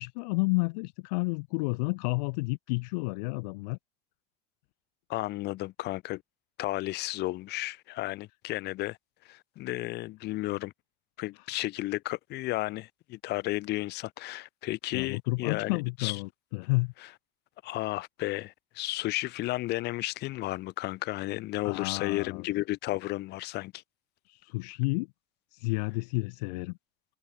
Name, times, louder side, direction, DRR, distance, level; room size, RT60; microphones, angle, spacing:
voice 1, 0.0-3.8 14.9-16.9 21.6-22.5 24.3-25.1 25.5-26.8, left 28 dB, 75° left, 1.2 m, -31 dB
voice 2, 5.1-6.2 6.6-9.0 9.2-10.7 11.2-16.2 17.6-23.8, left 18 dB, 50° left, 2.7 m, -33 dB
open air
supercardioid pair, 130°, 21 cm